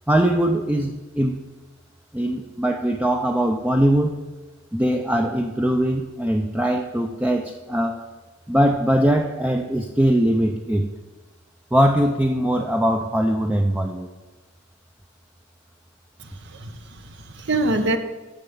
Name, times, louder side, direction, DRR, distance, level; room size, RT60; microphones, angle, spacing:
voice 1, 0.1-1.4 2.1-4.2 4.7-8.0 8.5-10.9 11.7-14.1, right 1 dB, 5° right, 4 dB, 0.4 m, -21 dB
voice 2, 16.4-18.0, right 2 dB, 65° right, 8 dB, 0.8 m, -25 dB
7.1 x 6.6 x 7.1 m, 1.2 s
head